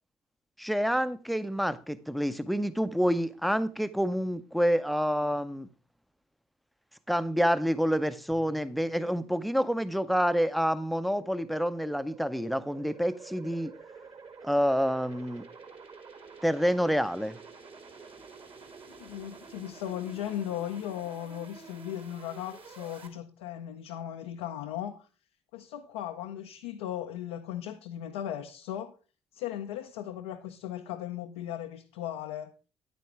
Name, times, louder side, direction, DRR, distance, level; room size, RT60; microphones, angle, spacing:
voice 1, 0.6-5.7 7.1-13.7 14.4-15.4 16.4-17.4, equal, ahead, 0.6 m, -28 dB
sound 1, 8.3-23.1, right 4 dB, 40° right, 2.0 m, -50 dB
voice 2, 19.0-25.1 25.5-28.9 29.3-32.5, left 11 dB, 75° left, 0.6 m, -37 dB
9.4 x 9.2 x 3.3 m
figure-of-eight pair, 45°, 14 cm